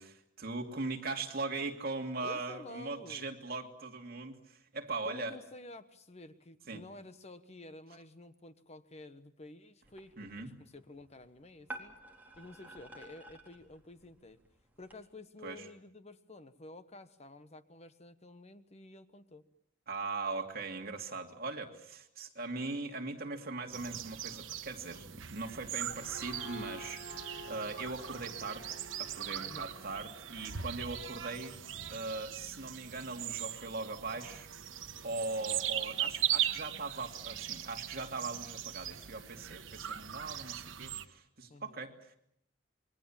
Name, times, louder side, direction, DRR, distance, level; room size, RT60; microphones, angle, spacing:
voice 1, 0.0-5.4 6.7-6.8 10.2-10.5 15.4-15.7 19.9-31.6 31.9-34.5 35.0-42.1, right 3 dB, 50° right, 3 dB, 2.7 m, -40 dB
voice 2, 2.2-3.2 5.0-11.9 12.4-14.4 14.8-19.4 29.4-29.7 41.5-41.8, left 2 dB, 35° left, 11 dB, 1.2 m, -51 dB
sound 1, 9.8-15.0, right 2 dB, 10° right, 3.9 m, -52 dB
sound 2, 23.7-41.0, right 11 dB, 90° right, 1.2 m, -39 dB
sound 3, 25.6-31.1, right 1 dB, 70° left, 2.6 m, -50 dB
28.0 x 22.5 x 7.4 m, 0.73 s
head